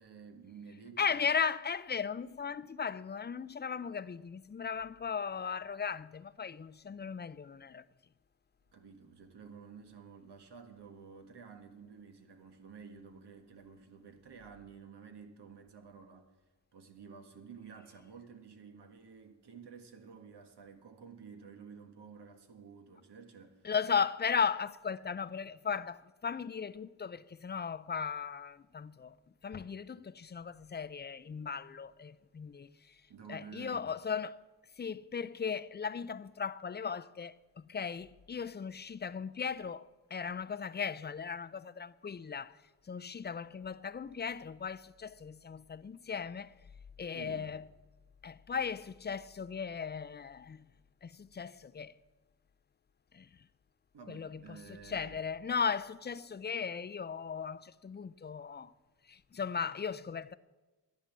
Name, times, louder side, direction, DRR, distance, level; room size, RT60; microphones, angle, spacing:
voice 1, 0.0-1.3 8.7-16.3 16.7-23.7 33.1-33.9 47.1-47.5 53.9-55.2, right 6 dB, 85° right, 1.7 m, -52 dB
voice 2, 1.0-7.8 23.6-29.2 29.4-32.9 33.3-34.4 34.8-42.6 42.9-46.5 47.0-47.6 48.2-50.7 51.0-52.0 53.1-53.3 54.1-54.6 54.8-58.7 59.1-60.3, left 6 dB, 30° left, 0.4 m, -37 dB
14.0 x 10.5 x 7.3 m
wide cardioid pair, 150°, 39 cm